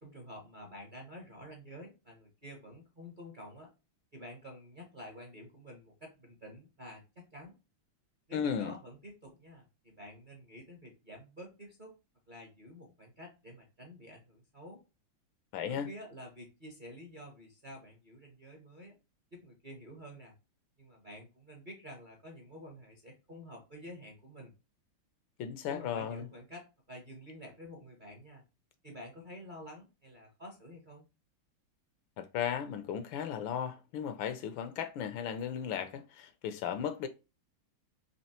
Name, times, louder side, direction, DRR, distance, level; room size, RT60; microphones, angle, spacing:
voice 1, 0.0-3.7 4.1-7.5 8.3-12.0 12.3-14.8 15.7-18.9 19.3-20.3 20.8-24.5 25.7-28.4 28.8-31.0, equal, 40° right, 0.7 m, -49 dB
voice 2, 8.3-8.7 15.5-15.9 25.4-26.2 32.2-37.1, left 8 dB, 75° left, 1.3 m, -35 dB
4.3 x 3.0 x 2.8 m
omnidirectional pair, 2.3 m